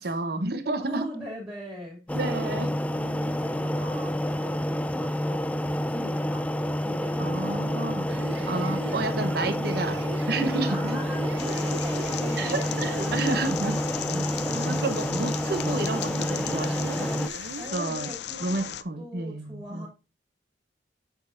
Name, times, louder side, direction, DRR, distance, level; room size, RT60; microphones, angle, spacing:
voice 1, 0.0-1.0 2.1-2.7 7.2-8.1 8.5-10.0 10.3-10.8 12.4-13.8 14.5-17.1 17.7-18.1 18.4-19.9, right 2 dB, 60° right, 0.9 m, -30 dB
voice 2, 0.8-8.8 10.5-13.4 14.3-15.3 17.6-19.9, equal, 10° right, 2.7 m, -41 dB
sound 1, 2.1-17.3, equal, 10° left, 0.4 m, -28 dB
sound 2, 8.0-17.8, right 3 dB, 75° right, 0.6 m, -39 dB
sound 3, 11.4-18.8, left 11 dB, 65° left, 0.5 m, -37 dB
8.1 x 6.4 x 2.5 m
head